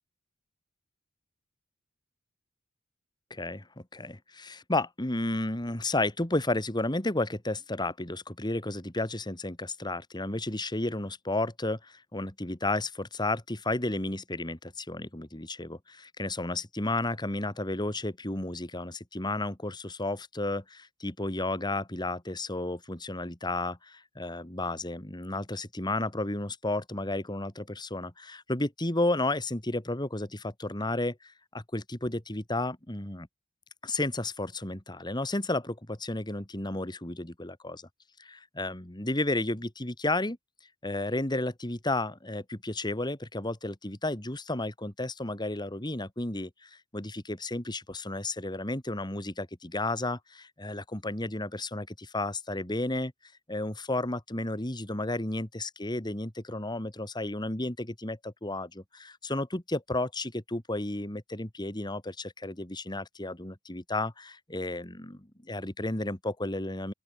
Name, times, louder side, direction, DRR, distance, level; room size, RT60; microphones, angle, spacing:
voice 1, 3.3-3.7 3.9-33.3 33.8-37.9 38.2-40.4 40.8-53.1 53.5-66.9, left 2 dB, 20° left, 2.4 m, -32 dB
open air
head